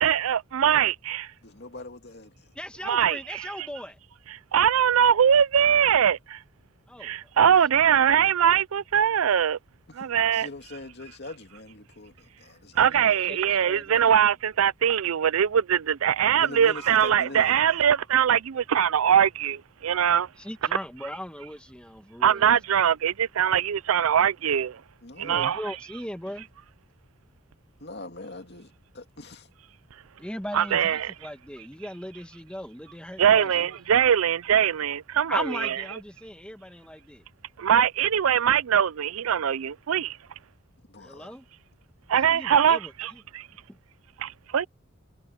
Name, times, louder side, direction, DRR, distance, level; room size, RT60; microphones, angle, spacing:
voice 1, 0.0-1.3 2.8-3.7 4.3-6.4 7.0-9.6 10.0-10.5 12.8-20.3 22.2-24.8 25.2-25.8 30.5-31.1 33.2-35.8 37.6-40.2 42.1-43.4 44.2-44.7, right 8 dB, 90° right, 0.5 m, -22 dB
voice 2, 1.4-2.5 10.0-10.1 10.3-12.9 16.3-17.6 25.0-25.5 27.8-29.5 40.9-41.4, left 2 dB, 55° left, 2.4 m, -42 dB
voice 3, 2.6-4.0 6.9-7.1 7.5-7.7 12.8-13.4 13.6-14.0 20.4-22.6 25.2-26.5 30.2-33.5 35.3-37.2 41.0-41.4 42.1-42.9, left 1 dB, 5° left, 1.7 m, -38 dB
head